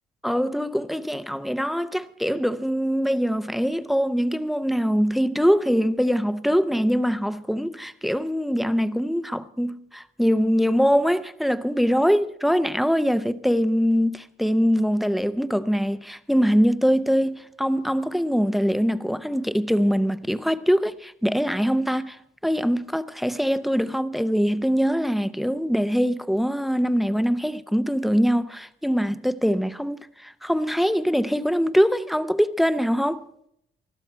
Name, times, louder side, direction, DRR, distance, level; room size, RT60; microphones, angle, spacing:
voice 1, 0.2-33.2, equal, ahead, 0.6 m, -23 dB
20.0 x 13.0 x 4.4 m
cardioid pair, 90°, 20 cm